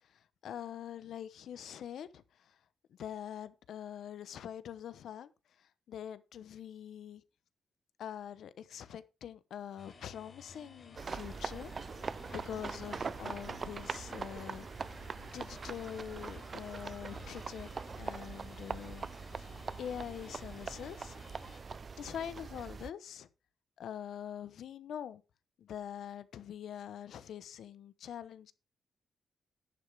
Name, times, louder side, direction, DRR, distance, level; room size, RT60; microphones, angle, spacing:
voice 1, 0.4-2.5 3.0-5.3 5.6-7.2 8.0-11.7 12.3-17.7 18.0-19.1 19.4-19.5 19.8-21.2 21.5-21.6 22.0-23.3 23.8-25.2 25.6-28.5, left 9 dB, 85° left, 0.9 m, -44 dB
sound 1, 9.8-21.6, left 5 dB, 40° left, 4.0 m, -55 dB
sound 2, 11.0-22.9, right 5 dB, 40° right, 0.4 m, -42 dB
11.0 x 10.0 x 3.5 m
cardioid pair, 100°, 0 cm